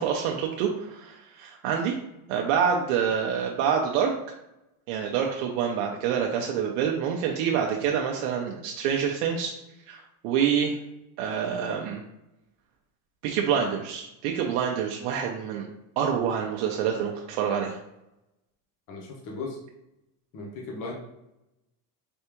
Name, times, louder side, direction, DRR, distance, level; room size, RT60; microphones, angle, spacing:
voice 1, 0.0-2.0 2.3-4.1 4.9-9.5 9.9-10.8 11.2-12.0 13.2-15.7 16.0-17.8, right 7 dB, 75° right, 0 dB, 0.6 m, -27 dB
voice 2, 18.9-19.6 20.3-20.9, left 3 dB, 45° left, -1 dB, 0.9 m, -36 dB
3.5 x 3.3 x 3.0 m, 0.88 s
cardioid pair, 155°, 46 cm